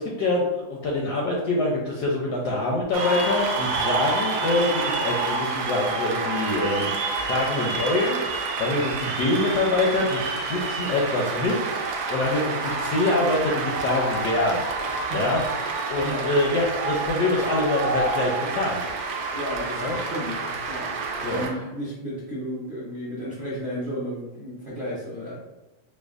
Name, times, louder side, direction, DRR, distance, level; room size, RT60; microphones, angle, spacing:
voice 1, 0.0-14.7 15.1-15.4 15.9-18.8 19.8-20.0 21.2-21.4, left 2 dB, 75° left, -2 dB, 1.0 m, -25 dB
Cheering / Applause, 2.9-21.5, right 3 dB, 75° right, 1.0 m, -28 dB
voice 2, 19.3-25.4, equal, 55° right, -9 dB, 0.4 m, -33 dB
5.0 x 2.1 x 2.4 m, 1.1 s
omnidirectional pair, 2.2 m